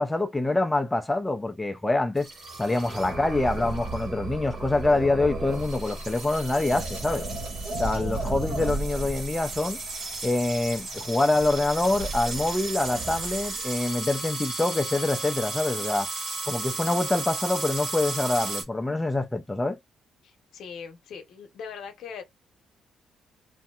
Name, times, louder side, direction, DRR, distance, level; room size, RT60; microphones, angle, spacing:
voice 1, 0.0-2.3 2.6-7.3 7.8-9.8 10.2-16.1 16.5-19.8, left 2 dB, 10° left, 0.4 m, -25 dB
sound 1, 2.2-18.6, right 2 dB, 65° right, 1.5 m, -33 dB
voice 2, 20.2-22.2, left 6 dB, 75° left, 0.8 m, -41 dB
3.3 x 2.6 x 2.3 m
cardioid pair, 90°, 0 cm